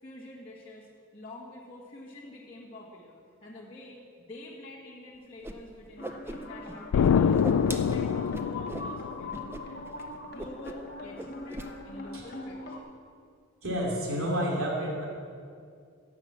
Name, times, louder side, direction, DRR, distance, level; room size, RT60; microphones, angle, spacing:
voice 1, 0.0-0.9 1.1-7.4 7.6-9.8 10.2-12.9, left 1 dB, 25° left, -8 dB, 1.6 m, -47 dB
Whoosh swoosh swish, 5.4-5.5 5.8-6.7 7.0-8.9 9.3-9.6 9.9-10.0 10.4-10.9 11.1-11.7, right 1 dB, 10° right, 0.5 m, -39 dB
sound 1, 6.0-12.8, left 2 dB, 45° left, 1.1 m, -42 dB
Explosion, 6.9-9.6, left 7 dB, 80° left, 0.3 m, -25 dB
voice 2, 13.6-15.1, equal, 75° right, -2 dB, 3.0 m, -30 dB
16.0 x 5.9 x 7.4 m, 2.3 s
head